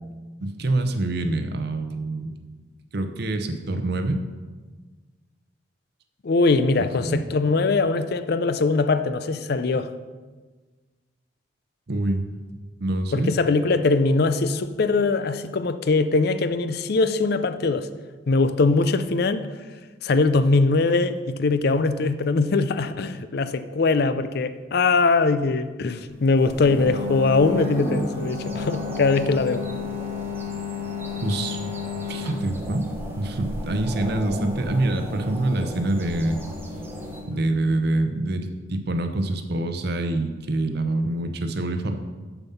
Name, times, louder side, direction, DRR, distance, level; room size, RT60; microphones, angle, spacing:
voice 1, 0.4-2.4 2.9-4.2 6.8-7.2 11.9-12.2 12.8-13.3 31.2-31.6 32.1-32.9 33.2-36.4 37.3-42.0, right 2 dB, 55° right, 7 dB, 0.7 m, -25 dB
voice 2, 6.2-9.9 13.1-17.9 18.3-19.5 20.0-29.7, left 3 dB, 55° left, 12 dB, 0.4 m, -21 dB
sound 1, 26.4-37.2, equal, 10° right, 0.9 m, -37 dB
sound 2, 26.7-37.5, left 4 dB, 25° left, 1.9 m, -33 dB
7.1 x 7.1 x 5.6 m, 1.4 s
head